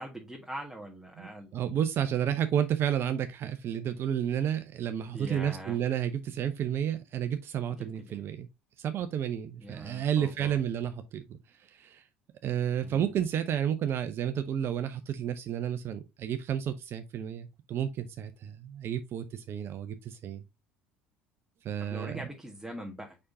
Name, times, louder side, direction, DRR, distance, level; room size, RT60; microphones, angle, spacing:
voice 1, 0.0-1.5 5.1-5.8 7.8-8.2 9.6-10.6 12.8-13.1 21.8-23.2, right 1 dB, 5° right, 1.6 m, -42 dB
voice 2, 1.2-8.5 8.8-12.0 12.4-20.4 21.6-22.2, right 9 dB, 45° right, 0.7 m, -31 dB
6.5 x 5.4 x 2.7 m
figure-of-eight pair, 65°, 6 cm